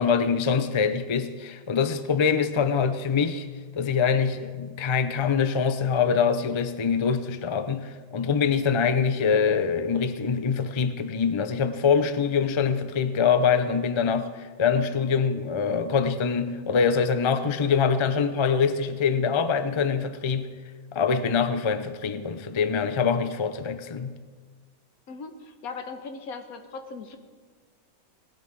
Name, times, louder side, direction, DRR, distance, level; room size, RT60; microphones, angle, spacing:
voice 1, 0.0-3.5 3.7-20.5 20.9-24.2, left 6 dB, 35° left, 10 dB, 0.5 m, -24 dB
voice 2, 25.1-27.2, left 4 dB, 80° left, 7 dB, 1.6 m, -38 dB
18.5 x 12.0 x 4.7 m, 1.5 s
omnidirectional pair, 1.5 m